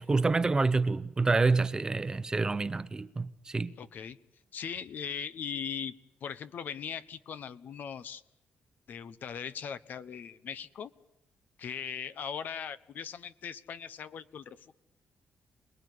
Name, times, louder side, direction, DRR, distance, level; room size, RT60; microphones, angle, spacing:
voice 1, 0.0-3.7, right 3 dB, 20° right, 0.9 m, -27 dB
voice 2, 3.8-4.2 4.5-5.9 6.2-8.2 8.9-10.9 11.6-14.8, left 7 dB, 60° left, 1.1 m, -39 dB
27.0 x 20.0 x 9.6 m
cardioid pair, 140°, 4 cm